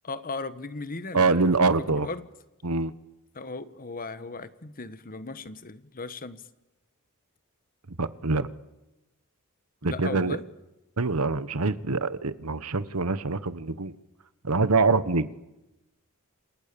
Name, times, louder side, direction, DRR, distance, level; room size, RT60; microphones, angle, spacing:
voice 1, 0.0-2.3 3.3-6.5 9.8-10.4, left 3 dB, 40° left, 13 dB, 1.3 m, -37 dB
voice 2, 1.1-2.1 2.6-2.9 8.0-8.5 9.8-10.4 11.0-13.9 14.4-15.3, right 3 dB, 80° right, 14 dB, 1.3 m, -24 dB
28.5 x 27.5 x 7.0 m, 0.97 s
head